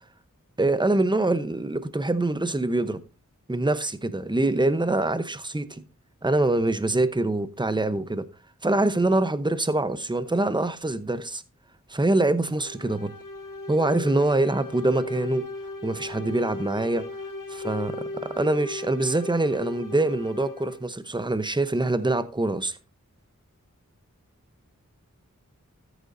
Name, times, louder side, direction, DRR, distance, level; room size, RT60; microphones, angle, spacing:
voice 1, 0.6-3.0 3.5-5.8 6.2-8.3 8.6-11.4 11.9-13.1 13.7-15.5 15.8-17.1 17.6-22.8, right 2 dB, 15° right, 0.8 m, -24 dB
sound 1, 12.6-20.9, left 2 dB, 85° left, 0.9 m, -37 dB
14.0 x 8.0 x 2.6 m
wide cardioid pair, 45°, 31 cm